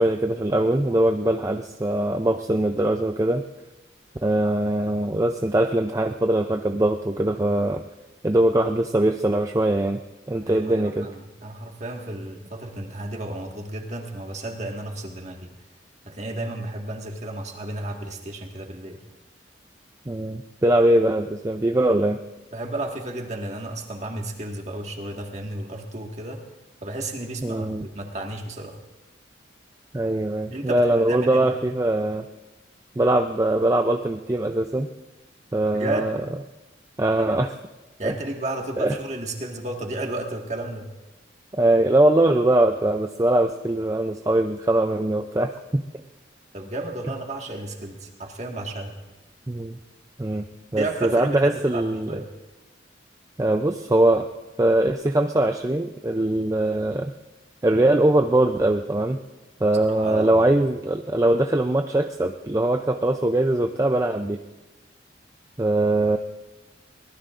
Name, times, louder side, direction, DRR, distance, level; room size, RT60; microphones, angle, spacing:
voice 1, 0.0-3.4 4.2-7.8 8.2-10.0 10.3-11.1 20.1-22.2 27.4-27.9 29.9-32.3 33.0-34.9 35.5-36.2 37.0-37.6 38.0-38.1 38.8-39.0 41.6-45.8 49.5-49.8 50.2-50.4 50.7-52.2 53.4-54.3 54.6-57.1 57.6-59.2 59.6-64.4 65.6-66.2, right 1 dB, 20° right, 5 dB, 0.4 m, -21 dB
voice 2, 10.5-15.5 16.1-19.0 22.5-26.4 26.8-28.8 30.5-31.5 35.7-36.2 38.0-40.9 46.5-49.0 50.8-52.3 59.9-60.4, right 2 dB, 40° right, 2 dB, 1.7 m, -32 dB
24.0 x 19.0 x 2.5 m, 1.1 s
head